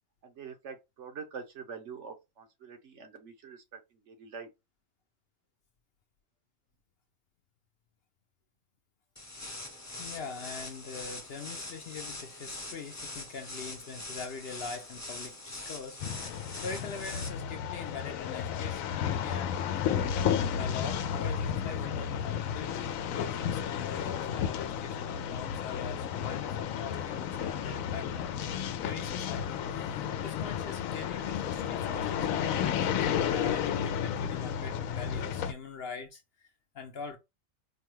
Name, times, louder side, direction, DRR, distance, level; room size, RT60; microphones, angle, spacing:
voice 1, 0.2-4.5, right 6 dB, 65° right, 1.1 m, -45 dB
sound 1, 9.2-17.3, left 2 dB, 15° left, 0.7 m, -43 dB
voice 2, 10.0-20.1 20.5-37.2, left 5 dB, 60° left, 0.7 m, -43 dB
sound 2, 16.0-35.5, left 8 dB, 85° left, 1.0 m, -32 dB
4.6 x 2.3 x 3.0 m
omnidirectional pair, 1.4 m